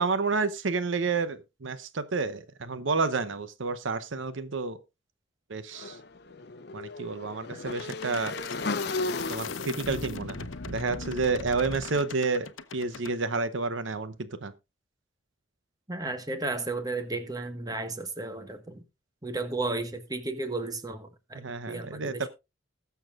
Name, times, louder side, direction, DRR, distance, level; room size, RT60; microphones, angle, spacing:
voice 1, 0.0-4.8 5.5-6.0 6.7-8.3 9.3-14.5 21.3-22.3, right 4 dB, 75° right, 0.8 m, -30 dB
Motorcycle / Engine, 5.7-11.8, left 3 dB, 55° left, 0.8 m, -36 dB
sound 1, 7.7-13.1, left 4 dB, 85° left, 0.8 m, -39 dB
voice 2, 15.9-18.8 19.2-21.4 21.7-22.3, right 2 dB, 20° right, 1.4 m, -33 dB
20.5 x 7.0 x 2.4 m
head